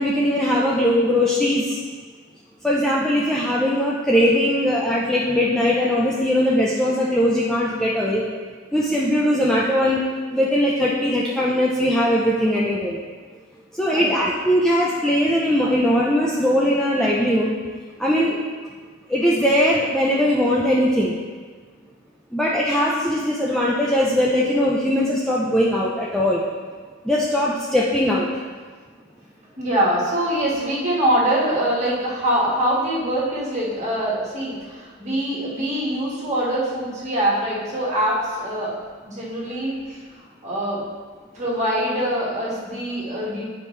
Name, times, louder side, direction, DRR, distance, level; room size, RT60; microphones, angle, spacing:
voice 1, 0.0-1.8 2.6-8.2 8.7-10.0 10.3-13.0 13.8-17.5 18.0-18.4 19.1-21.2 22.3-26.4 27.0-28.3, equal, 5° left, -5 dB, 0.4 m, -20 dB
voice 2, 29.6-38.7 39.0-40.0 40.4-40.8 41.3-43.5, right 1 dB, 30° right, -6 dB, 1.7 m, -23 dB
9.5 x 5.1 x 3.2 m, 1.5 s
head